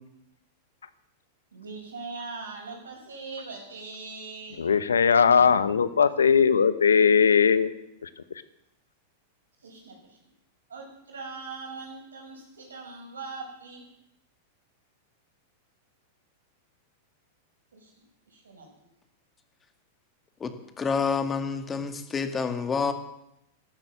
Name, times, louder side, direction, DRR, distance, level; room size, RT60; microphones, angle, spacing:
voice 1, 1.5-4.7 9.6-10.2 10.7-13.8 17.7-17.9 18.3-18.7, right 4 dB, 85° right, 1 dB, 5.7 m, -41 dB
voice 2, 4.6-7.7 8.0-8.1, left 6 dB, 90° left, 14 dB, 1.0 m, -20 dB
voice 3, 20.4-22.9, left 5 dB, 20° left, 8 dB, 2.0 m, -28 dB
13.0 x 12.5 x 7.5 m, 0.81 s
hypercardioid pair, 105°, 0 cm